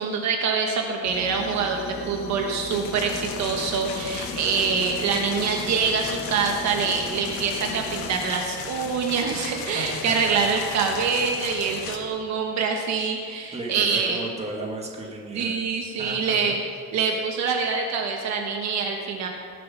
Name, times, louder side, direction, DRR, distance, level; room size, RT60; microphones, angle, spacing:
voice 1, 0.0-14.2 15.3-16.6 16.9-19.3, right 5 dB, 55° right, 2 dB, 1.3 m, -25 dB
sound 1, 1.0-8.3, left 3 dB, 30° left, 1.3 m, -37 dB
sound 2, 2.7-12.0, left 6 dB, 85° left, 1.6 m, -36 dB
voice 2, 9.7-10.4 13.5-15.5 16.0-16.5, right 2 dB, 20° right, -1 dB, 1.9 m, -34 dB
18.5 x 7.6 x 5.9 m, 2.2 s
cardioid pair, 165°, 34 cm